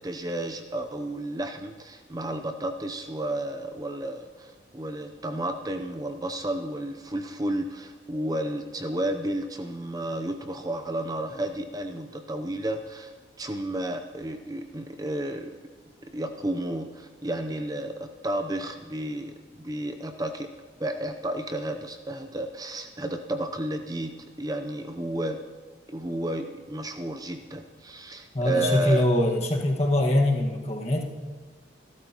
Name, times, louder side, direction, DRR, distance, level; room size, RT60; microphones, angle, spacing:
voice 1, 0.0-13.1 13.4-15.6 16.0-20.5 20.8-25.4 25.9-29.1, right 1 dB, 20° right, 6 dB, 0.6 m, -32 dB
voice 2, 28.3-31.0, left 1 dB, 35° left, 0 dB, 1.6 m, -23 dB
26.5 x 13.0 x 3.0 m, 1.5 s
head